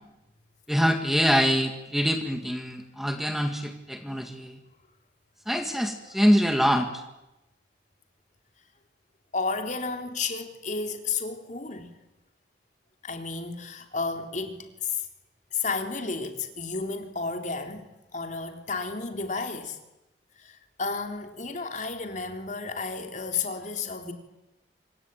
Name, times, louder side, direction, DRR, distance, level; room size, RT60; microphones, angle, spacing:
voice 1, 0.7-4.6 5.5-7.0, equal, ahead, 6 dB, 1.8 m, -24 dB
voice 2, 9.3-11.9 13.0-15.1 15.5-19.8 20.4-24.1, left 4 dB, 45° left, 6 dB, 3.4 m, -32 dB
27.0 x 23.5 x 9.2 m, 0.95 s
head